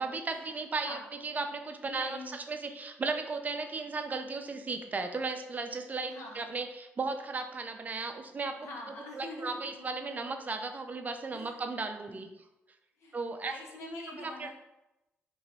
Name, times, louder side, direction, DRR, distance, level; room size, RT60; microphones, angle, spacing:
voice 1, 0.0-8.6 9.1-12.3 13.1-13.6 14.1-14.5, right 3 dB, 35° right, 6 dB, 0.5 m, -35 dB
voice 2, 1.9-2.4 6.1-6.4 8.6-9.8 11.3-11.6 12.1-12.3 13.0-13.2 13.5-14.5, left 1 dB, 80° left, 0 dB, 0.8 m, -44 dB
3.0 x 2.8 x 4.1 m, 0.95 s
supercardioid pair, 65°, 5 cm